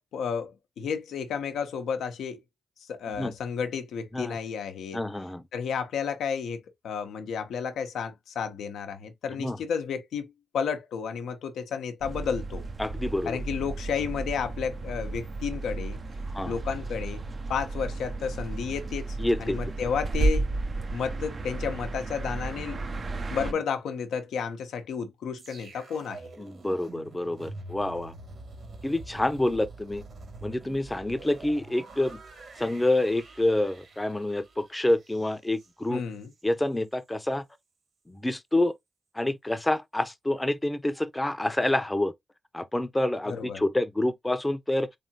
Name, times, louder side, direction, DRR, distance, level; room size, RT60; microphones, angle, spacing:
voice 1, 0.1-2.4 2.9-5.0 5.5-12.6 13.3-16.0 16.4-17.2 17.5-20.5 20.9-22.8 23.3-26.3 35.9-36.3 43.3-43.6, left 6 dB, 80° left, 0.7 m, -32 dB
voice 2, 4.9-5.4 9.4-9.6 12.8-13.4 16.3-16.6 19.2-19.6 26.4-28.1 28.8-30.0 30.4-32.2 32.6-36.0 36.4-37.4 38.1-38.7 39.2-42.1 42.5-44.9, left 1 dB, 15° left, 0.7 m, -27 dB
sound 1, 12.0-23.5, right 2 dB, 50° right, 0.6 m, -33 dB
sound 2, 25.4-36.5 36.8-37.0, right 3 dB, 70° right, 1.8 m, -46 dB
3.6 x 3.3 x 2.8 m
supercardioid pair, 40°, 0 cm